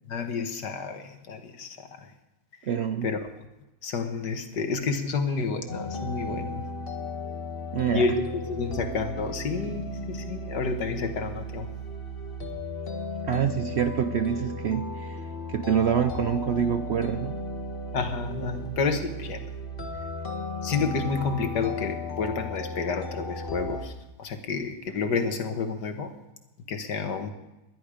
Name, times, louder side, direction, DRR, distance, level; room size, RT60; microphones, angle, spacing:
voice 1, 0.1-2.1 3.0-3.2 3.8-6.6 7.9-11.7 17.9-19.5 20.6-23.9 24.2-26.1 26.7-27.3, left 4 dB, 75° left, 7 dB, 2.0 m, -30 dB
voice 2, 2.7-3.1 7.7-8.1 13.3-15.2 15.5-17.3, right 8 dB, 85° right, 10 dB, 0.5 m, -26 dB
sound 1, 5.7-23.8, left 1 dB, 35° left, 1.6 m, -35 dB
20.5 x 11.0 x 5.0 m, 0.99 s
omnidirectional pair, 1.8 m